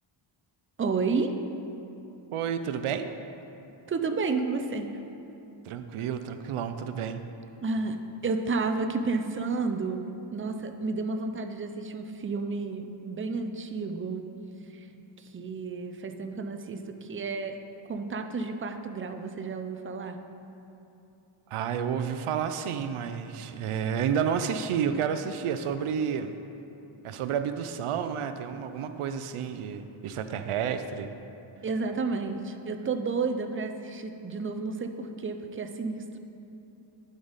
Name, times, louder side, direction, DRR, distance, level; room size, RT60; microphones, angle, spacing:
voice 1, 0.8-1.3 3.9-5.0 7.6-14.3 14.7-14.9 15.2-17.6 17.9-20.2 31.6-36.2, right 4 dB, 25° right, 6 dB, 0.4 m, -31 dB
voice 2, 2.3-3.1 5.6-7.2 21.5-26.3 27.0-31.1, right 7 dB, 85° right, 9 dB, 0.6 m, -30 dB
11.0 x 5.3 x 4.0 m, 2.9 s
wide cardioid pair, 130°, 49 cm